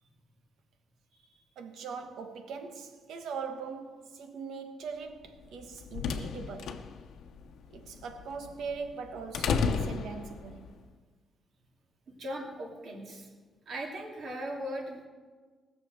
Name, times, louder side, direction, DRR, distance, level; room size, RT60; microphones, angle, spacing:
voice 1, 1.6-6.9 7.7-10.7, right 5 dB, 85° right, 1.3 m, -41 dB
sound 1, 5.4-10.7, left 5 dB, 75° left, 0.9 m, -34 dB
voice 2, 12.2-13.3 13.7-15.1, equal, 50° right, 2.4 m, -38 dB
18.5 x 7.0 x 6.6 m
cardioid pair, 165°, 0 cm